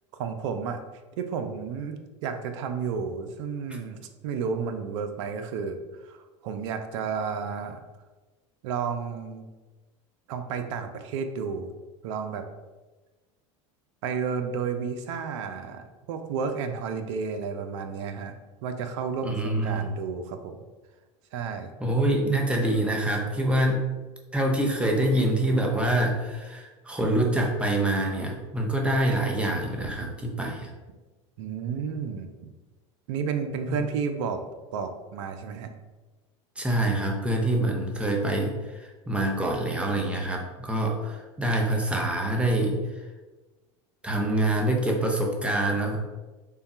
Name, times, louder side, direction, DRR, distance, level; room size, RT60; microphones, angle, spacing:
voice 1, 0.1-0.8 1.2-7.8 8.6-9.5 10.3-11.7 12.0-12.4 14.0-20.7 21.3-21.7 31.4-32.3 33.1-34.4 34.7-35.7, right 6 dB, 70° right, 7 dB, 0.5 m, -32 dB
voice 2, 19.2-19.9 21.8-23.8 24.3-30.7 33.7-33.8 36.6-42.8 44.0-46.0, right 1 dB, 5° right, 1 dB, 0.7 m, -25 dB
3.4 x 2.2 x 4.1 m, 1.2 s
hypercardioid pair, 95°, 16 cm